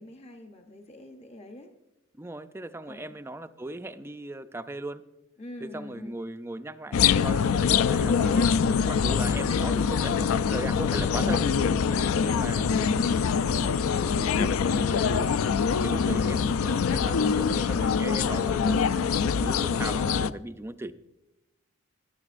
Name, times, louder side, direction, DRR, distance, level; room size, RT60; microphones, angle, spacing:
voice 1, 0.0-1.7 2.9-3.1 5.4-6.2 11.1-11.3 11.9-12.4, left 1 dB, 30° left, 4 dB, 0.6 m, -44 dB
voice 2, 2.2-5.0 5.6-11.5 12.2-13.2 13.5-15.6 15.8-18.8 19.2-20.9, right 1 dB, 10° right, 10 dB, 0.3 m, -38 dB
sound 1, 6.9-20.3, left 6 dB, 75° left, 0.4 m, -24 dB
15.5 x 11.5 x 2.5 m, 0.98 s
head